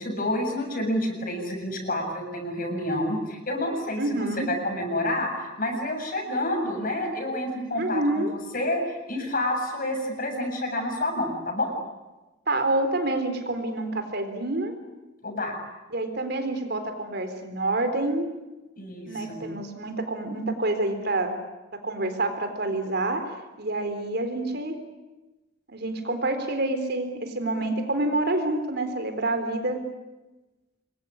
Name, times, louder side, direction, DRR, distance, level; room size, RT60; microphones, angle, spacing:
voice 1, 0.0-8.8 9.1-11.7 15.2-15.5 18.8-19.4, left 1 dB, 45° left, 4 dB, 7.1 m, -29 dB
voice 2, 4.0-4.5 7.8-8.3 12.5-14.7 15.9-18.3 19.1-21.4 21.8-23.2 23.6-24.8 25.7-29.8, right 2 dB, 55° right, 7 dB, 3.9 m, -27 dB
27.0 x 22.0 x 10.0 m, 1.1 s
head